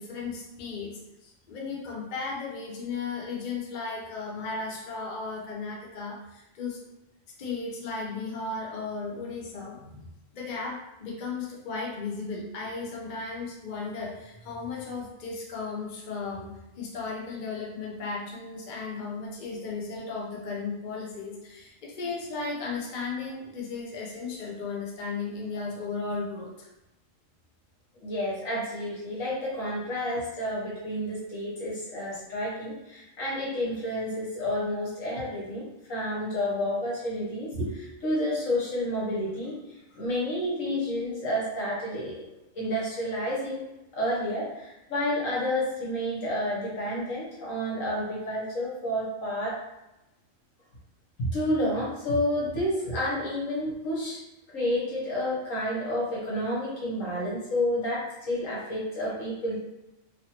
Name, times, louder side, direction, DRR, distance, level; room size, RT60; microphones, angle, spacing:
voice 1, 0.0-6.8 7.4-10.1 10.3-26.7, left 4 dB, 50° left, -3 dB, 0.6 m, -35 dB
voice 2, 28.0-39.6 39.9-42.2 42.5-43.6 43.9-49.6 51.2-54.2 54.5-59.6, equal, 75° left, -6 dB, 1.6 m, -30 dB
3.0 x 2.6 x 2.8 m, 0.95 s
omnidirectional pair, 1.4 m